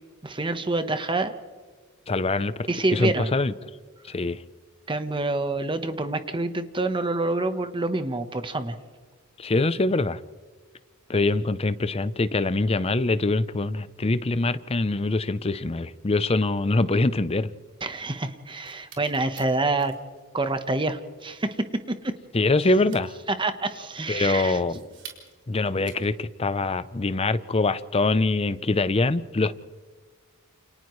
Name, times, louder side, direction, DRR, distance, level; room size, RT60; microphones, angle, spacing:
voice 1, 0.2-1.3 2.7-3.3 4.9-8.8 17.8-19.9 20.3-22.1 23.3-24.6, right 2 dB, 25° right, 1.1 m, -27 dB
voice 2, 2.1-3.5 4.1-4.4 9.4-10.2 11.1-17.5 22.3-23.1 24.1-24.8 25.5-29.5, left 2 dB, 30° left, 0.6 m, -24 dB
sound 1, 18.5-26.4, right 6 dB, 55° right, 4.2 m, -50 dB
29.5 x 28.5 x 3.2 m
head